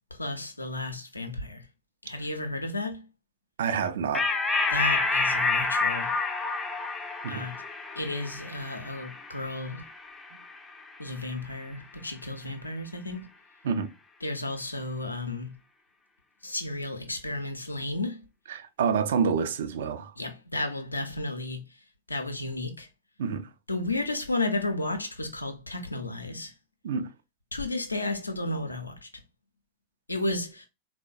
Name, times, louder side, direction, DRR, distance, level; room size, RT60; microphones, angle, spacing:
voice 1, 0.1-1.6 2.0-3.0 4.7-6.1 7.3-7.6 7.9-9.8 11.0-13.3 14.2-15.5 16.4-18.2 20.2-21.6 22.1-22.9 23.7-26.5 27.5-29.1 30.1-30.7, left 2 dB, 80° left, 0.5 m, -33 dB
voice 2, 3.6-4.3 7.2-7.4 13.6-13.9 18.5-20.1 23.2-23.5 26.8-27.1, right 6 dB, 60° right, 0.4 m, -28 dB
sound 1, 4.1-11.0, left 3 dB, 15° left, 0.4 m, -29 dB
3.6 x 2.1 x 2.4 m
figure-of-eight pair, 90°, 0 cm